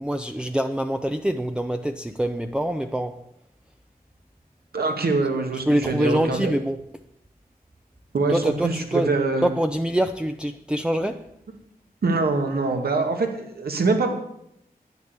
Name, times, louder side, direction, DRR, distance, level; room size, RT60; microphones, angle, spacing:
voice 1, 0.0-3.2 5.7-6.8 8.3-9.1 9.4-11.3, right 1 dB, 5° right, 0.6 m, -25 dB
voice 2, 4.7-6.5 8.1-9.5 12.0-14.1, right 3 dB, 75° right, 2.1 m, -24 dB
10.5 x 8.9 x 8.1 m
wide cardioid pair, 105°, 16 cm